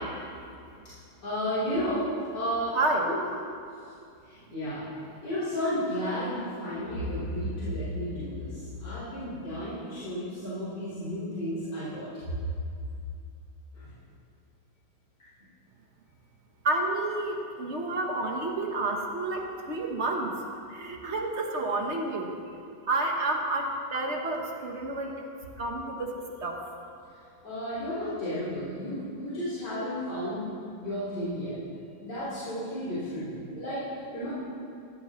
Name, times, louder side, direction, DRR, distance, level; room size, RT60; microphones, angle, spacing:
voice 1, 1.2-2.0 2.3-2.7 3.0-3.2 4.3-4.8 5.2-12.1 13.7-13.9 27.4-30.5 30.8-31.5 32.0-34.3, equal, 70° left, -14 dB, 4.5 m, -32 dB
voice 2, 2.7-3.1 16.6-20.3 20.7-22.3 22.9-25.1 25.6-26.2 26.4-26.6, right 2 dB, 45° right, 1 dB, 1.3 m, -29 dB
16.0 x 13.5 x 3.1 m, 2.4 s
omnidirectional pair, 1.9 m